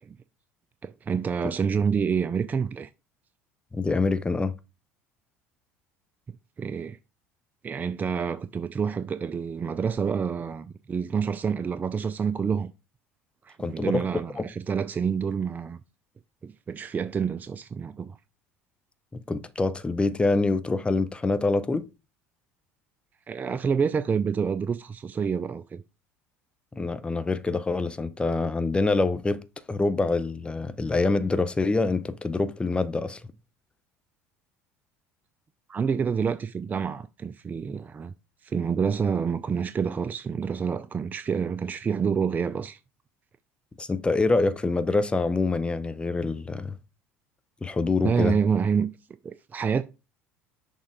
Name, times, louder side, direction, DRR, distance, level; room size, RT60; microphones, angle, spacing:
voice 1, 0.8-2.9 6.6-7.0 7.6-12.7 13.4-15.8 16.4-18.2 23.3-25.8 35.7-38.1 38.4-42.8 48.0-48.9 49.2-49.8, right 6 dB, 25° right, 0.4 m, -28 dB
voice 2, 3.7-4.5 13.6-14.0 14.4-14.5 19.3-21.9 26.7-29.4 29.7-33.2 43.8-46.8 47.6-48.4, left 3 dB, 15° left, 0.7 m, -25 dB
6.4 x 3.5 x 4.6 m
figure-of-eight pair, 65°, 7 cm